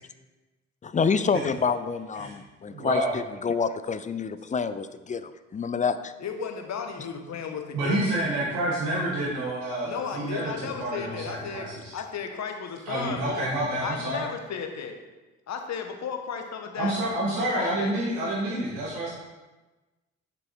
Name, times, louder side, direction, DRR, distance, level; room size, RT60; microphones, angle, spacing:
voice 1, 0.9-6.1, left 5 dB, 20° left, 12 dB, 0.5 m, -27 dB
voice 2, 2.7-3.1 7.7-11.9 12.9-14.2 16.8-19.1, right 1 dB, 70° right, -6 dB, 2.0 m, -28 dB
voice 3, 6.2-8.2 9.8-11.7 11.9-13.5 13.8-15.0 15.5-17.0 17.5-17.9, left 6 dB, 50° left, 5 dB, 1.4 m, -34 dB
6.9 x 6.9 x 4.5 m, 1.1 s
hypercardioid pair, 45°, 35 cm